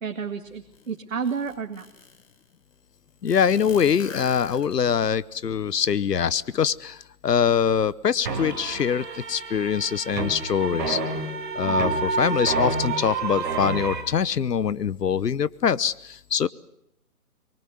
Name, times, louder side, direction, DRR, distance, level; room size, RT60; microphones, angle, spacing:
voice 1, 0.0-1.9 11.6-11.9, right 6 dB, 55° right, 6 dB, 2.2 m, -31 dB
sound 1, 0.7-0.8 1.2-2.4 3.3-5.1, left 4 dB, 55° left, 4.0 m, -42 dB
voice 2, 3.2-11.0 11.5-16.5, left 7 dB, 85° left, 19 dB, 1.1 m, -24 dB
sound 2, 8.2-14.0, right 3 dB, 30° right, 5.2 m, -28 dB
25.0 x 23.5 x 7.7 m, 0.78 s
hypercardioid pair, 175°, 47 cm